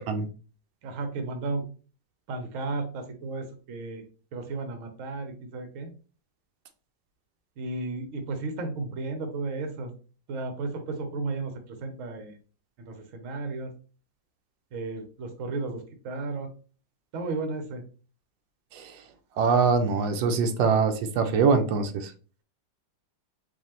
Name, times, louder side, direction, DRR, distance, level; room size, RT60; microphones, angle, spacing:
voice 1, 0.8-1.6 2.3-4.0 4.3-5.9 7.6-9.9 10.3-12.4 12.8-13.7 14.7-16.5 17.1-17.8, right 3 dB, 55° right, 6 dB, 1.0 m, -34 dB
voice 2, 19.4-22.1, right 5 dB, 90° right, 7 dB, 1.3 m, -23 dB
4.8 x 2.6 x 2.9 m, 0.37 s
omnidirectional pair, 2.0 m